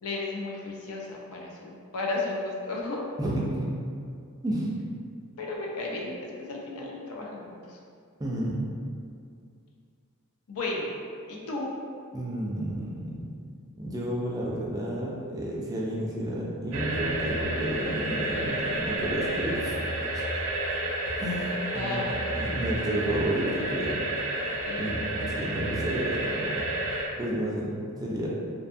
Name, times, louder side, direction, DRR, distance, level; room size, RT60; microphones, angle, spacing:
voice 1, 0.0-3.1 5.4-7.8 10.5-10.9 11.3-11.7 21.7-22.2 24.6-24.8, left 2 dB, 80° left, -2 dB, 0.5 m, -34 dB
voice 2, 3.2-3.7 4.4-4.7 8.2-8.6 12.1-13.3 13.8-19.7 21.1-24.0 24.8-26.6 27.2-27.7 28.0-28.3, right 1 dB, 15° right, -4 dB, 0.3 m, -31 dB
sound 1, 16.7-27.1, right 1 dB, 80° right, 0.4 m, -30 dB
2.5 x 2.3 x 2.5 m, 2.2 s
head